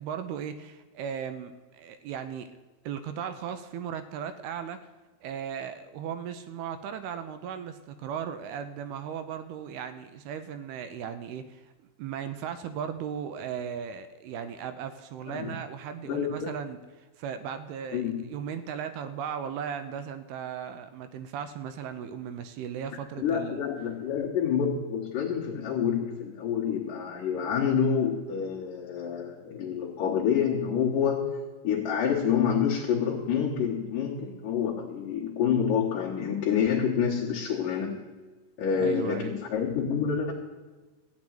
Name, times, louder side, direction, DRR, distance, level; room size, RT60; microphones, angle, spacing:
voice 1, 0.0-2.5 2.8-4.8 5.2-11.7 12.0-23.6 38.8-39.3, right 8 dB, 80° right, 10 dB, 2.4 m, -37 dB
voice 2, 16.0-16.5 17.9-18.2 23.2-31.4 31.6-38.0 38.6-40.3, left 7 dB, 60° left, -6 dB, 2.5 m, -27 dB
14.5 x 6.1 x 9.3 m, 1.3 s
omnidirectional pair, 4.9 m